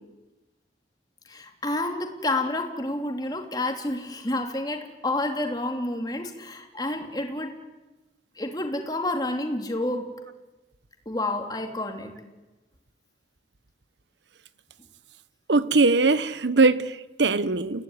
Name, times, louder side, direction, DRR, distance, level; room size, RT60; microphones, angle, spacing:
voice 1, 1.2-7.5 8.4-10.1 11.0-12.1, left 2 dB, 20° left, 3.0 m, -29 dB
voice 2, 15.5-17.8, right 3 dB, 80° right, 1.1 m, -21 dB
30.0 x 17.0 x 9.9 m
head